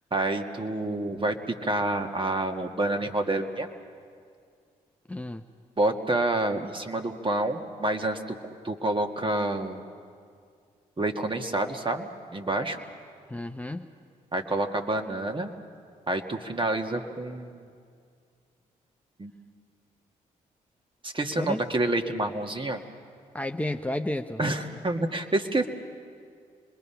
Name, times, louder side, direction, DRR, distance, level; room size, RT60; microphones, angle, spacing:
voice 1, 0.1-3.7 5.8-8.4 8.6-9.8 11.0-12.8 14.3-15.5 16.1-17.7 19.2-19.3 21.0-22.8 24.4-25.7, right 2 dB, 30° right, 4 dB, 1.7 m, -28 dB
voice 2, 5.1-5.4 13.3-13.9 21.4-21.6 23.3-24.4, left 1 dB, 10° left, 4 dB, 0.8 m, -31 dB
26.0 x 21.5 x 5.7 m, 2.3 s
hypercardioid pair, 45°, 17 cm